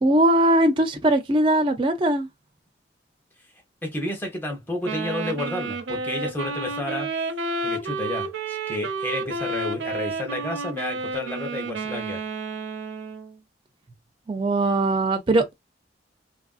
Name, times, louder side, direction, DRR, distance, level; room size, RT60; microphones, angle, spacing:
voice 1, 0.0-2.3 14.3-15.4, right 1 dB, 30° right, 0.4 m, -20 dB
voice 2, 3.8-7.1 7.6-12.2, left 1 dB, 10° left, 0.8 m, -31 dB
Wind instrument woodwind instrument, 4.8-13.3, right 3 dB, 90° right, 0.5 m, -31 dB
3.0 x 2.5 x 2.3 m
head